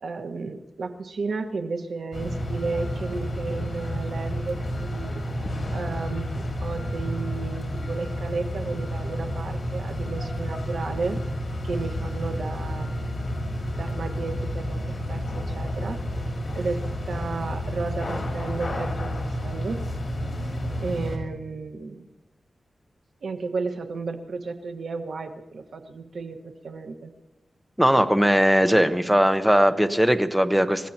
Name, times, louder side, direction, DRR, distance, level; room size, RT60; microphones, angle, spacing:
voice 1, 0.0-5.2 5.7-11.2 11.6-13.2 13.8-16.0 16.5-19.8 20.8-22.1 23.2-27.1, right 4 dB, 80° right, 5 dB, 1.5 m, -33 dB
sound 1, 2.1-21.2, equal, 45° left, 4.7 m, -30 dB
voice 2, 27.8-30.9, equal, 5° right, 8 dB, 1.0 m, -19 dB
29.0 x 16.5 x 3.0 m, 1.0 s
wide cardioid pair, 130°, 0 cm